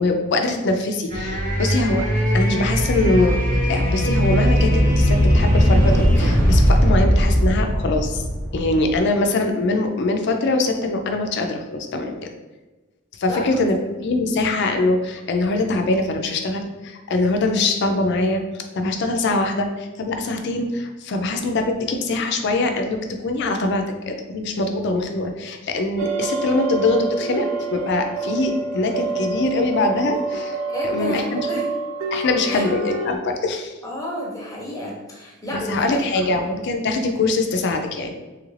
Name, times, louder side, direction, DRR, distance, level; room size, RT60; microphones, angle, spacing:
voice 1, 0.0-2.1 2.3-3.4 3.7-8.2 8.5-12.2 13.2-18.4 18.7-27.5 27.7-30.6 30.8-31.4 32.1-33.7 35.5-38.1, left 2 dB, 55° left, 5 dB, 0.4 m, -23 dB
sound 1, 1.1-9.0, equal, 40° right, 0.8 m, -18 dB
sound 2, 26.0-33.2, right 4 dB, 80° right, 0.4 m, -28 dB
voice 2, 30.7-31.7 32.5-32.6 33.8-36.5, left 1 dB, 15° left, -2 dB, 0.6 m, -30 dB
3.1 x 2.4 x 3.1 m, 1.2 s
head